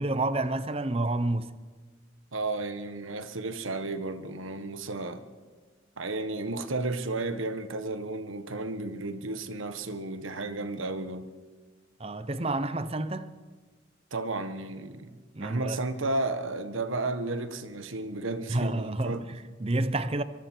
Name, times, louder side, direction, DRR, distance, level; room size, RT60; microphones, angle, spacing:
voice 1, 0.0-1.6 12.0-13.3 15.3-15.8 18.5-20.2, right 2 dB, 30° right, 0.8 m, -29 dB
voice 2, 2.3-5.2 6.0-11.3 14.1-19.2, right 2 dB, 85° right, 1.4 m, -33 dB
24.0 x 23.5 x 4.6 m
head